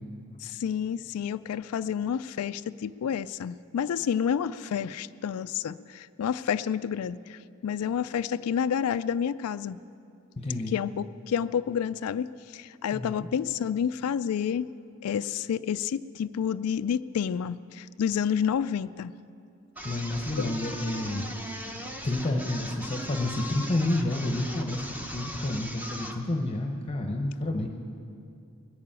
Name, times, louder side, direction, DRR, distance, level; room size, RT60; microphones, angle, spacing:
voice 1, 0.4-9.8 10.7-14.7 15.0-19.1 20.4-20.5, left 8 dB, 80° left, 14 dB, 0.3 m, -29 dB
voice 2, 10.4-10.7 12.9-13.3 19.8-21.5 22.0-27.7, left 1 dB, 25° left, 3 dB, 0.9 m, -30 dB
sound 1, 19.8-26.2, equal, 10° right, 1.0 m, -39 dB
20.5 x 6.8 x 8.8 m, 2.5 s
head